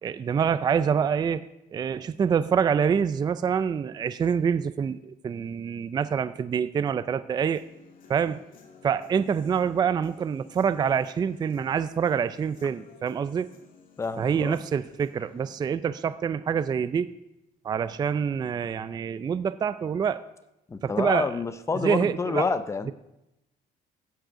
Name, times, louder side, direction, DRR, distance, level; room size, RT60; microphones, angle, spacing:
voice 1, 0.0-1.5 1.7-7.6 8.1-8.4 8.8-13.5 14.2-17.1 17.6-20.2 20.8-21.4 21.8-22.5, right 7 dB, 25° right, 13 dB, 0.4 m, -26 dB
Human voice / Guitar, 7.5-15.6, left 5 dB, 55° left, 2.2 m, -54 dB
voice 2, 14.0-14.6 20.7-22.9, left 4 dB, 15° left, 11 dB, 0.7 m, -28 dB
15.0 x 6.4 x 8.0 m, 0.91 s
cardioid pair, 160°, 17 cm